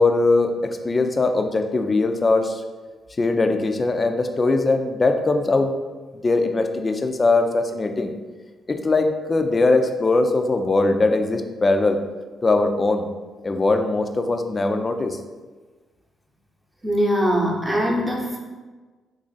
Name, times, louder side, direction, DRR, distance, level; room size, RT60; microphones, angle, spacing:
voice 1, 0.0-2.6 3.2-5.7 6.2-8.1 8.7-12.0 12.4-13.1 13.4-15.2, left 3 dB, 35° left, 6 dB, 0.4 m, -20 dB
voice 2, 16.8-18.4, equal, 20° right, -1 dB, 0.8 m, -22 dB
3.0 x 2.5 x 3.9 m, 1.3 s
supercardioid pair, 50°, 0 cm